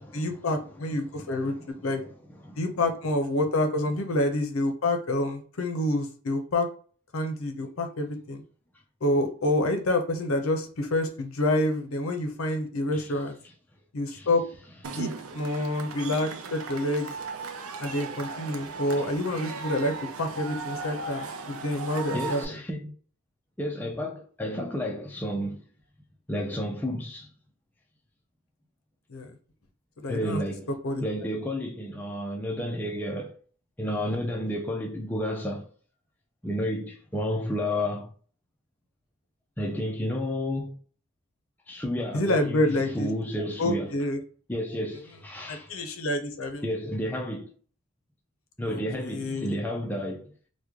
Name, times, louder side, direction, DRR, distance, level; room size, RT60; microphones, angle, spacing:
voice 1, 0.1-1.5 1.8-2.0 2.6-6.7 7.1-8.4 9.0-13.4 13.9-14.4 14.9-17.1 17.8-22.6 29.1-29.3 30.0-30.4 30.8-31.0 42.1-43.1 43.6-44.2 45.5-46.6 48.7-49.6, left 1 dB, 75° left, 0.6 m, -28 dB
voice 2, 0.9-1.7 2.4-2.6 12.9-13.1 14.1-14.3 14.9-15.0 22.1-22.9 23.6-25.6 26.3-27.3 30.1-30.7 31.0-33.3 33.8-35.7 36.4-38.1 39.6-40.7 41.7-43.9 44.5-45.7 46.6-47.5 48.6-50.3, equal, 10° left, 0.4 m, -31 dB
Cheering / Crowd, 14.8-22.5, right 4 dB, 80° right, 0.5 m, -37 dB
3.1 x 2.1 x 3.5 m
head